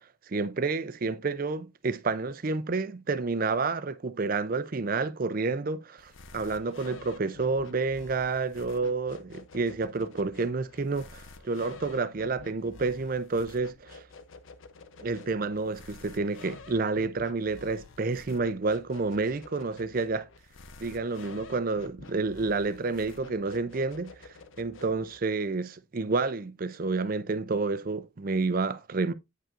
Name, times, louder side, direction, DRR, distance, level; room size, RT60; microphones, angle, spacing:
voice 1, 0.3-14.0 15.0-20.3 20.8-24.1 24.6-29.1, right 3 dB, 45° right, 0.5 m, -29 dB
sound 1, 6.0-25.2, left 3 dB, 75° left, 0.7 m, -50 dB
8.7 x 5.5 x 2.5 m
head